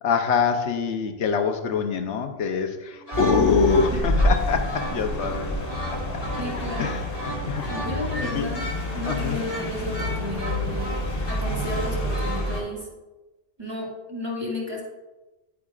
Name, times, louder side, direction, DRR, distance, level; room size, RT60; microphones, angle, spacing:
voice 1, 0.0-5.6 6.8-7.0 7.5-7.7 8.2-8.5 9.0-9.4, left 5 dB, 90° left, 6 dB, 1.1 m, -24 dB
sound 1, 2.9-12.6, equal, 20° left, 1.5 m, -36 dB
sound 2, 3.1-12.6, equal, 55° left, 1.5 m, -28 dB
voice 2, 6.4-6.9 7.7-12.9 13.6-14.8, left 1 dB, 20° right, -4 dB, 1.9 m, -33 dB
9.8 x 8.6 x 2.4 m, 1.1 s
omnidirectional pair, 1.2 m